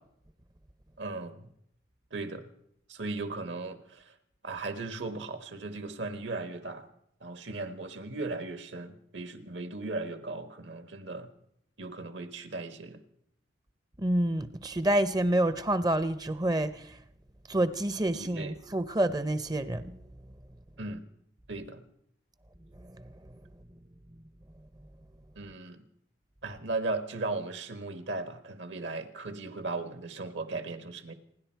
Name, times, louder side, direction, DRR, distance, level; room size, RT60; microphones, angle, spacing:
voice 1, 1.0-1.5 2.1-2.5 2.9-4.1 4.4-6.9 7.2-11.3 11.8-13.0 18.1-18.5 20.8-21.0 21.5-21.9 25.3-25.8 26.4-31.1, right 3 dB, 75° right, 1.5 m, -37 dB
voice 2, 14.0-17.0 17.5-20.0 22.8-23.0, right 1 dB, 20° right, 0.5 m, -28 dB
28.5 x 10.5 x 4.6 m
head